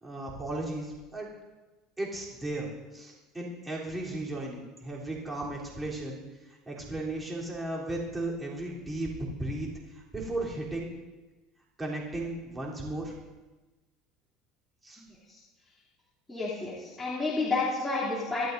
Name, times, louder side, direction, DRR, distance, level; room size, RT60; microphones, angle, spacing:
voice 1, 0.0-1.3 2.0-10.9 11.8-13.1 14.8-15.0, right 2 dB, 15° right, -4 dB, 3.5 m, -35 dB
voice 2, 15.0-15.4 16.3-18.5, left 3 dB, 10° left, -9 dB, 3.1 m, -31 dB
24.5 x 11.5 x 2.7 m, 1.2 s
supercardioid pair, 125°, 0 cm